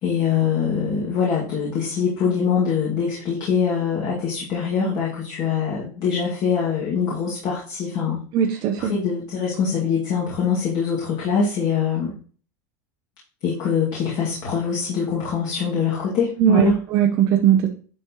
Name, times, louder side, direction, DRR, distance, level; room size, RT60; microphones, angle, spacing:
voice 1, 0.0-8.2 8.8-12.1 13.4-16.7, left 6 dB, 45° left, -5 dB, 2.3 m, -23 dB
voice 2, 8.3-8.9 16.4-17.7, right 9 dB, 45° right, 2 dB, 0.8 m, -19 dB
10.5 x 4.2 x 3.1 m, 0.41 s
supercardioid pair, 145°, 10 cm